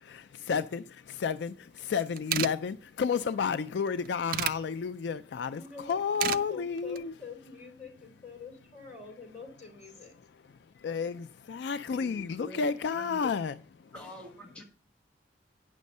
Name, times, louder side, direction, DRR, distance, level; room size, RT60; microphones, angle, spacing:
voice 1, 0.0-7.1 10.8-13.6 13.8-13.9, left 6 dB, 70° left, 0.4 m, -31 dB
sound 1, 1.8-1.9 2.1-2.5 3.8-4.6 5.9-6.4 6.8-7.0, right 10 dB, 50° right, 0.3 m, -31 dB
voice 2, 5.4-10.1, left 5 dB, 40° left, 3.2 m, -46 dB
voice 3, 12.0-12.7 12.9-13.3 13.9-14.6, left 1 dB, 5° left, 1.3 m, -46 dB
9.3 x 6.3 x 5.3 m
head